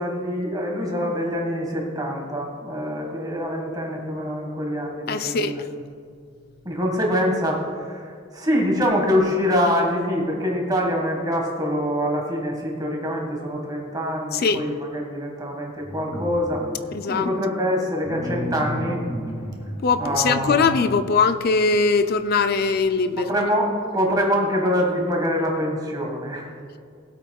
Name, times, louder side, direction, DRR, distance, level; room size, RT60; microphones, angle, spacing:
voice 1, 0.0-5.6 6.7-16.7 17.0-19.0 20.0-20.8 23.2-26.5, equal, 20° right, 0 dB, 1.7 m, -25 dB
voice 2, 5.1-5.5 14.3-14.6 16.9-17.3 19.8-23.3, left 4 dB, 50° left, 10 dB, 0.4 m, -21 dB
sound 1, 15.8-17.1 18.0-21.2 21.7-21.8, left 1 dB, 90° left, 1.3 m, -33 dB
20.0 x 8.1 x 2.3 m, 2.3 s
head